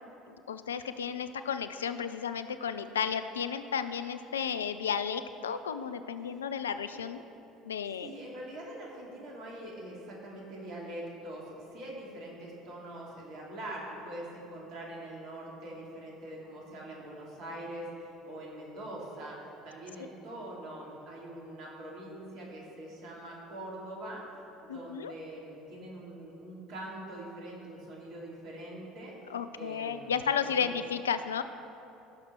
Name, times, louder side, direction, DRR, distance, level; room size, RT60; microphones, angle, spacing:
voice 1, 0.3-7.2 7.6-8.1 24.7-25.1 29.3-31.4, left 7 dB, 75° left, 11 dB, 0.4 m, -33 dB
voice 2, 7.8-19.4 19.6-24.2 24.6-29.2 29.5-30.7, right 1 dB, 55° right, -3 dB, 2.8 m, -43 dB
15.5 x 6.5 x 4.6 m, 2.9 s
figure-of-eight pair, 60°, 0 cm